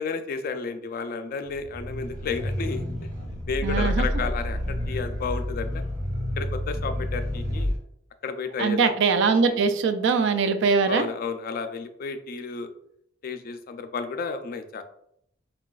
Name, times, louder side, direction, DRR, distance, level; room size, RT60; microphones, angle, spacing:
voice 1, 0.0-2.8 3.5-5.8 6.4-7.7 8.2-9.0 9.5-9.6 10.9-12.7 13.2-14.8, left 5 dB, 50° left, 8 dB, 0.3 m, -32 dB
sound 1, 1.6-7.8, left 1 dB, 40° right, 1.2 m, -29 dB
voice 2, 3.6-4.1 8.6-11.1, right 5 dB, 65° right, 8 dB, 0.4 m, -22 dB
4.8 x 2.2 x 2.3 m, 0.72 s
head